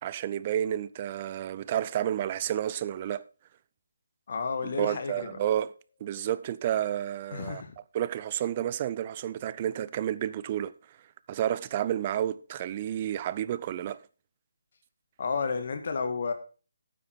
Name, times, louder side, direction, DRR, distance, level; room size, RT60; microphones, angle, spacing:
voice 1, 0.0-3.2 4.6-5.7 6.0-7.6 7.9-10.7 11.3-14.0, right 11 dB, 30° right, 0.5 m, -30 dB
voice 2, 4.3-5.4 7.3-7.8 15.2-16.3, left 5 dB, 50° left, 1.7 m, -31 dB
9.4 x 8.5 x 4.5 m
figure-of-eight pair, 150°, 0 cm